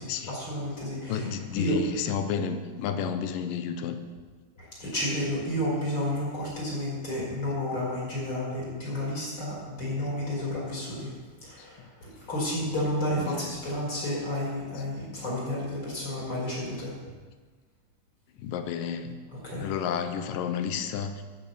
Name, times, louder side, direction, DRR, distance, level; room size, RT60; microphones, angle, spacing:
voice 1, 0.0-1.3 1.5-1.8 4.6-11.1 11.4-16.9 19.4-19.7, left 1 dB, 35° left, -6 dB, 5.1 m, -31 dB
voice 2, 1.1-4.0 11.6-11.7 13.1-13.6 14.7-14.9 18.4-19.2 19.6-21.2, left 7 dB, 85° left, 8 dB, 2.4 m, -31 dB
13.5 x 6.8 x 7.0 m, 1.4 s
omnidirectional pair, 4.0 m